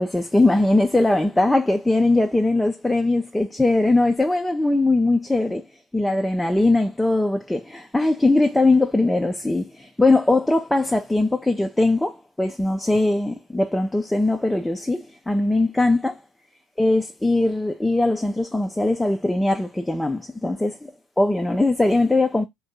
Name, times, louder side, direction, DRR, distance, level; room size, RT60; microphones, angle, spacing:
voice 1, 0.0-5.6 5.9-16.2 16.8-20.9 21.2-22.4, left 2 dB, 5° left, 0.4 m, -20 dB
2.6 x 2.1 x 3.8 m
figure-of-eight pair, 60°, 0 cm